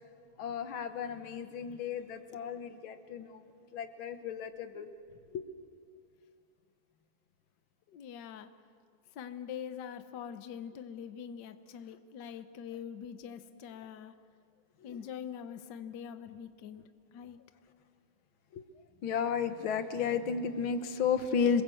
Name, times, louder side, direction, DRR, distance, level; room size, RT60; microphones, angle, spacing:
voice 1, 0.4-3.5 3.7-4.9 5.3-5.5 14.9-15.0 18.5-18.6 19.0-21.6, left 6 dB, 85° left, 9 dB, 2.0 m, -33 dB
voice 2, 7.9-8.6 9.1-14.2 14.8-16.8 17.1-17.4, left 8 dB, 65° left, 10 dB, 1.5 m, -44 dB
27.0 x 21.0 x 7.7 m, 2.3 s
omnidirectional pair, 2.1 m